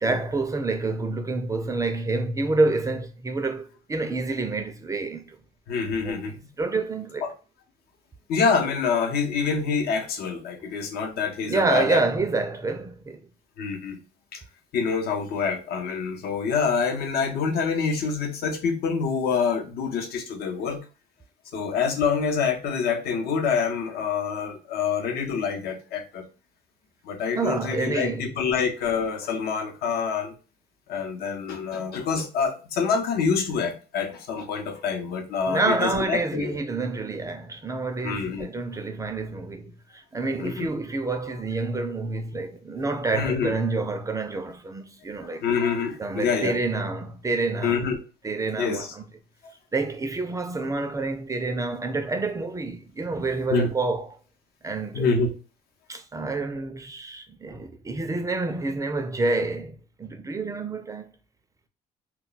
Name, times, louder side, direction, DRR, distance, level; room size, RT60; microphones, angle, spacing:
voice 1, 0.0-5.4 6.0-6.2 6.6-7.3 11.4-13.2 27.4-28.3 35.5-45.4 46.0-47.8 48.2-49.0 49.7-54.2 54.6-55.1 55.9-61.1, right 3 dB, 20° right, 0.4 m, -28 dB
voice 2, 5.7-6.4 7.2-7.3 8.3-12.0 13.6-14.0 14.3-14.4 14.7-20.8 21.5-26.2 27.0-30.3 30.9-36.6 38.0-38.5 40.4-40.7 43.1-43.5 45.4-46.6 47.6-48.0 48.6-48.9 49.4-49.5 53.5-53.7 54.9-55.3, left 5 dB, 70° left, 0.8 m, -26 dB
2.2 x 2.2 x 3.9 m
cardioid pair, 110°, 17 cm